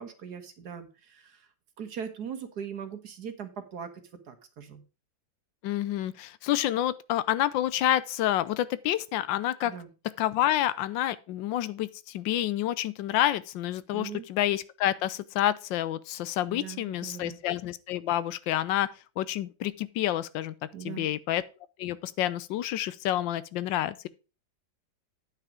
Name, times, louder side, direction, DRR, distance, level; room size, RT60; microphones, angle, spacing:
voice 1, 0.0-1.5 1.8-3.9 4.3-4.8 9.6-9.9 13.9-14.3 16.5-17.4 20.7-21.1, right 7 dB, 60° right, 1.7 m, -40 dB
voice 2, 5.6-9.7 10.2-18.9 19.2-20.5 20.8-21.4 21.8-24.1, left 13 dB, 80° left, 1.3 m, -28 dB
9.2 x 5.8 x 5.0 m
omnidirectional pair, 2.0 m